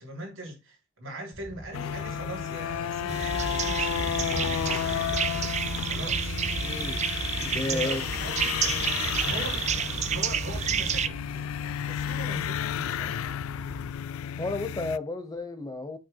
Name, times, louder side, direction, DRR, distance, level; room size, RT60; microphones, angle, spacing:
voice 1, 0.0-5.5 5.8-6.4 7.4-13.2, right 1 dB, 70° right, 3.2 m, -41 dB
sound 1, 1.3-13.9, equal, 5° right, 1.1 m, -44 dB
sound 2, 1.7-15.0, left 9 dB, 80° left, 0.3 m, -32 dB
sound 3, 3.1-11.1, right 7 dB, 30° right, 0.4 m, -30 dB
voice 2, 6.6-7.0 7.4-8.0 14.4-16.0, left 2 dB, 20° left, 0.8 m, -32 dB
8.5 x 5.9 x 2.2 m
head